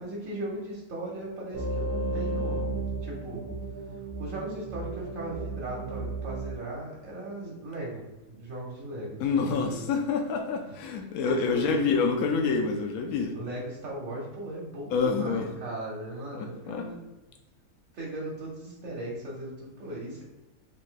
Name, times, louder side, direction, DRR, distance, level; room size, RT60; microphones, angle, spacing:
voice 1, 0.0-3.5 4.2-9.9 10.7-10.8 11.3-11.9 13.3-17.0 17.9-20.2, right 1 dB, 65° right, -4 dB, 1.3 m, -38 dB
sound 1, 1.5-6.5, right 2 dB, 90° right, 1.1 m, -33 dB
voice 2, 9.2-13.4 14.9-15.5 16.3-16.8, left 5 dB, 80° left, 3 dB, 1.0 m, -27 dB
3.8 x 2.7 x 3.7 m, 1.1 s
omnidirectional pair, 1.5 m